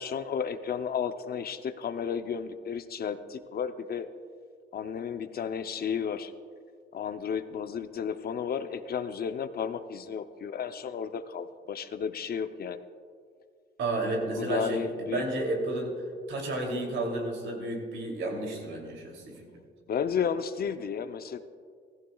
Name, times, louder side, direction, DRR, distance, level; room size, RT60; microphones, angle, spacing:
voice 1, 0.0-4.1 4.7-6.3 6.9-12.8 14.4-15.2 19.9-21.4, left 7 dB, 50° left, 10 dB, 0.6 m, -33 dB
voice 2, 13.8-16.0 16.3-19.4, right 2 dB, 75° right, 1 dB, 2.9 m, -32 dB
15.5 x 15.0 x 2.3 m, 2.1 s
cardioid pair, 90°, 20 cm